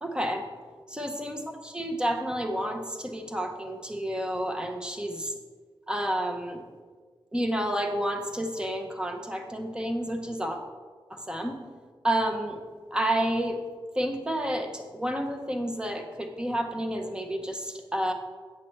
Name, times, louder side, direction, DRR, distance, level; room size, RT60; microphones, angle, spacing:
voice 1, 0.0-0.5 0.9-5.3 5.9-6.6 7.3-10.6 11.1-11.6 12.0-12.6 12.9-13.6 13.9-18.1, right 1 dB, 10° right, 4 dB, 0.7 m, -30 dB
8.8 x 7.4 x 3.2 m, 1.5 s
wide cardioid pair, 150°, 9 cm